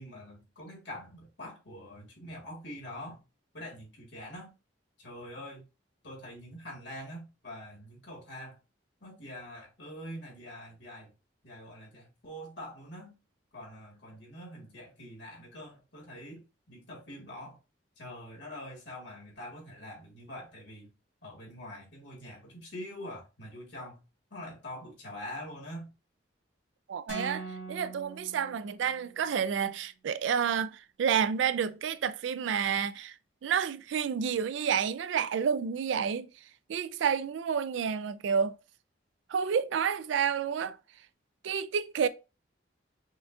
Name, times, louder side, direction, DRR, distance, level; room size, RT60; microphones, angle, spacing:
voice 1, 0.0-3.2 3.5-4.5 5.0-5.6 6.0-8.6 9.0-11.1 11.4-13.2 13.5-17.6 18.0-20.9 21.2-24.0 24.3-25.9, left 1 dB, 70° left, 1.9 m, -44 dB
voice 2, 26.9-33.1 33.4-36.3 36.7-38.5 39.3-40.8 41.4-42.1, right 7 dB, 80° right, 0.3 m, -30 dB
sound 1, 27.1-29.2, right 3 dB, 85° left, 1.5 m, -42 dB
5.4 x 2.4 x 2.6 m
head